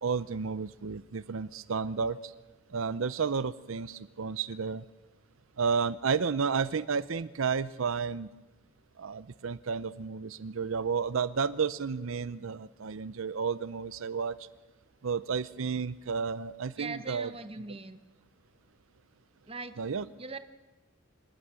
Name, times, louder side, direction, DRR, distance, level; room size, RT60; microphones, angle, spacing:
voice 1, 0.0-2.2 2.7-4.8 5.6-8.3 9.0-14.4 15.0-17.3 19.8-20.0, right 5 dB, 75° right, 16 dB, 0.6 m, -32 dB
voice 2, 16.8-18.0 19.5-19.8 20.2-20.4, right 3 dB, 25° right, 10 dB, 1.1 m, -40 dB
26.5 x 11.5 x 9.5 m, 1.1 s
head